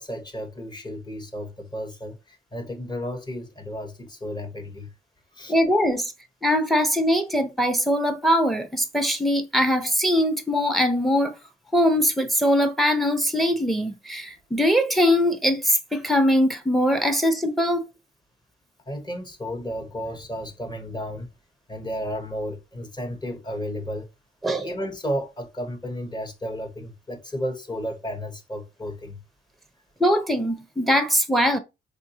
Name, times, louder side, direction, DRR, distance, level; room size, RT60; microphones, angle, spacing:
voice 1, 0.0-4.9 5.3-5.5 18.9-21.3 21.7-24.1 24.5-29.2, equal, 20° left, 1.0 m, -33 dB
voice 2, 5.5-6.1 6.4-11.3 11.7-17.8 24.4-24.7 30.0-31.6, equal, ahead, 0.6 m, -21 dB
4.1 x 2.5 x 2.7 m
cardioid pair, 90°, 20 cm